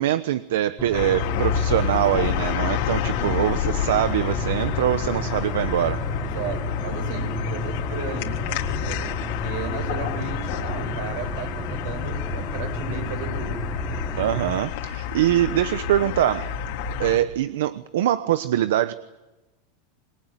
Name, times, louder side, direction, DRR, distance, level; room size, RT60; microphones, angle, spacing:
voice 1, 0.0-6.0 14.2-16.6 17.0-18.9, right 12 dB, 80° right, 13 dB, 1.0 m, -23 dB
sound 1, 0.8-14.5, left 1 dB, 5° left, 3.5 m, -32 dB
sound 2, 0.9-17.2, left 9 dB, 65° left, 3.4 m, -29 dB
voice 2, 6.2-14.0, right 6 dB, 65° right, 6 dB, 7.6 m, -35 dB
27.5 x 22.5 x 9.1 m, 1.1 s
supercardioid pair, 135°, 0 cm